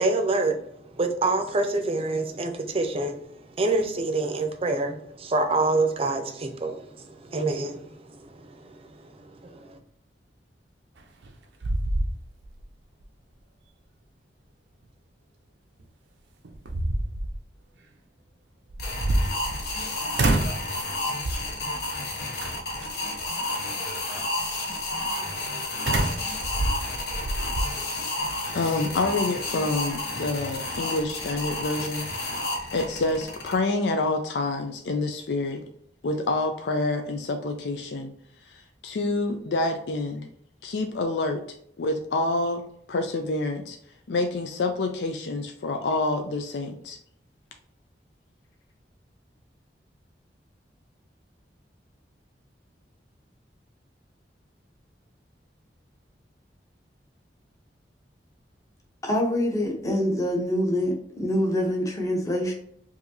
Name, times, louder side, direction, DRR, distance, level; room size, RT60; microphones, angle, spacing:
voice 1, 0.0-9.8, right 2 dB, 35° right, 6 dB, 0.5 m, -27 dB
sound 1, 11.0-11.3 11.6-12.6 13.0-13.1 15.8-15.9 16.4-17.4 18.7-19.8 20.2-20.7 21.2-21.6 22.4-22.9 25.9-27.7, right 2 dB, 85° right, 0.6 m, -27 dB
sound 2, 18.8-33.5, left 2 dB, 60° left, 1.0 m, -31 dB
voice 2, 28.5-32.1 32.7-35.6 36.0-38.1 38.5-40.3 40.6-41.4 41.8-42.6 42.9-43.8 44.1-47.0, left 2 dB, 80° left, 5 dB, 0.4 m, -27 dB
voice 3, 59.0-62.5, left 1 dB, 20° left, 0 dB, 0.8 m, -25 dB
4.8 x 2.7 x 2.7 m, 0.67 s
head